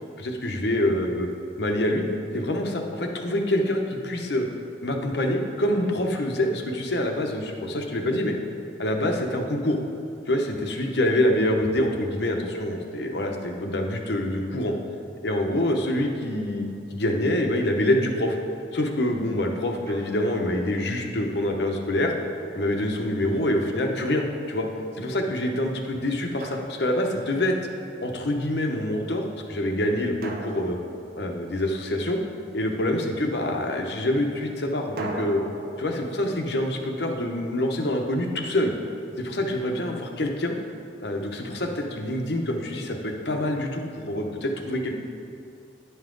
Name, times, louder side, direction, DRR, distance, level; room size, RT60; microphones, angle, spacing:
voice 1, 0.2-1.3 1.6-2.0 2.3-4.5 4.8-8.4 8.8-9.8 10.3-14.7 15.2-16.6 16.9-18.4 18.7-22.1 22.5-24.7 25.0-27.6 28.0-30.8 31.2-32.2 32.5-35.4 35.8-38.7 39.2-40.6 41.0-44.9, left 1 dB, 65° left, 2 dB, 0.8 m, -26 dB
Drum, 19.9-20.5 22.5-23.6 26.4-27.6 30.2-31.9 35.0-37.9, right 2 dB, 55° right, 0.7 m, -41 dB
10.0 x 5.5 x 3.8 m, 2.6 s
head